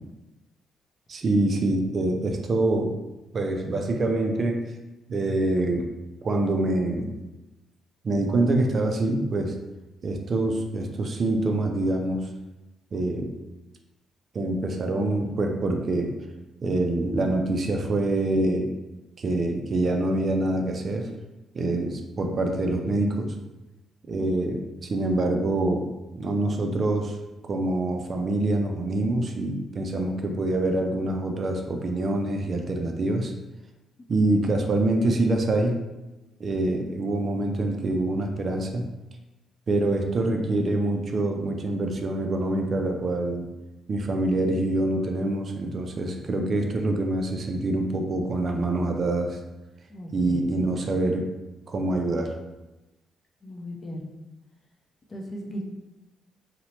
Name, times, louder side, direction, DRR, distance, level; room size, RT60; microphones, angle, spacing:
voice 1, 1.1-2.9 3.3-4.6 5.1-5.9 6.2-7.1 8.0-9.6 10.0-12.3 12.9-13.3 14.3-16.1 16.6-18.7 19.2-21.1 21.5-23.3 24.1-25.9 26.2-27.2 27.5-33.3 34.1-35.8 36.4-38.9 39.7-43.5 43.9-49.4 50.1-51.3 51.7-52.3, right 2 dB, 45° right, 3 dB, 0.3 m, -25 dB
voice 2, 49.9-50.5 53.4-54.1 55.1-55.6, equal, 30° left, -1 dB, 0.5 m, -37 dB
2.7 x 2.1 x 2.8 m, 1.0 s
cardioid pair, 90°, 0 cm